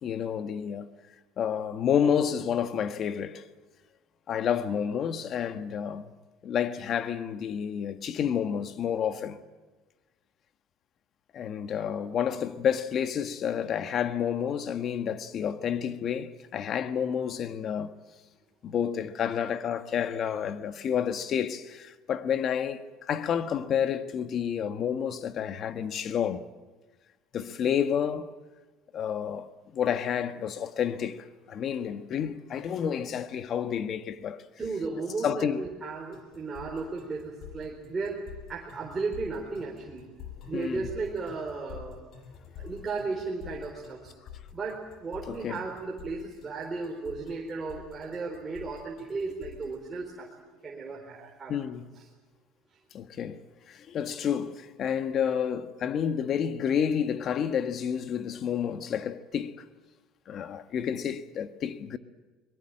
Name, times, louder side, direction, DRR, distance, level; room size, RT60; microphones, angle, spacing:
voice 1, 0.0-0.9 1.4-3.5 4.3-6.1 6.4-9.4 11.3-18.0 18.6-26.4 27.3-28.3 28.9-34.4 35.2-35.6 40.5-40.9 45.3-45.6 51.5-51.9 52.9-53.4 53.7-59.6 60.3-62.0, left 8 dB, 45° left, 1.5 m, -30 dB
voice 2, 34.6-38.2 38.5-40.1 40.5-42.0 42.6-44.1 44.5-50.3 50.6-51.5, right 4 dB, 20° right, 4.1 m, -35 dB
sound 1, 36.1-49.7, left 9 dB, 60° left, 7.7 m, -47 dB
22.5 x 21.0 x 8.9 m
cardioid pair, 125°, 0 cm